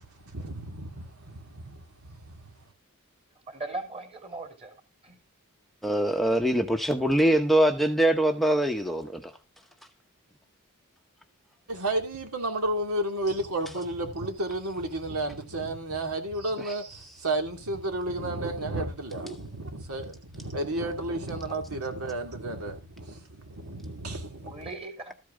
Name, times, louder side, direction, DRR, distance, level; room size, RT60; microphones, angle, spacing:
voice 1, 0.2-2.5 11.7-19.3 19.7-24.5, right 1 dB, 80° right, 2.6 m, -32 dB
voice 2, 3.5-4.8 5.0-5.1 19.2-19.3 21.5-21.6 24.4-25.1, right 2 dB, 25° right, 3.1 m, -38 dB
voice 3, 5.8-9.3 16.6-16.7, right 1 dB, ahead, 0.8 m, -23 dB
13.5 x 8.3 x 3.7 m
head